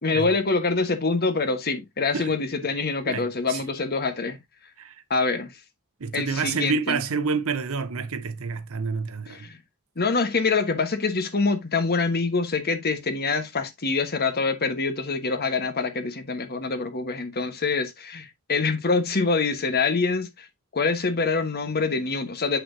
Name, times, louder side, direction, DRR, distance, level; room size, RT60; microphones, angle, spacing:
voice 1, 0.0-4.4 5.1-5.5 6.1-7.0 9.3-9.6 10.0-20.5 20.7-22.6, left 4 dB, 45° left, 1.2 m, -25 dB
voice 2, 3.1-3.6 4.8-5.0 6.0-9.5, right 5 dB, 65° right, 0.8 m, -28 dB
8.1 x 6.0 x 2.6 m
head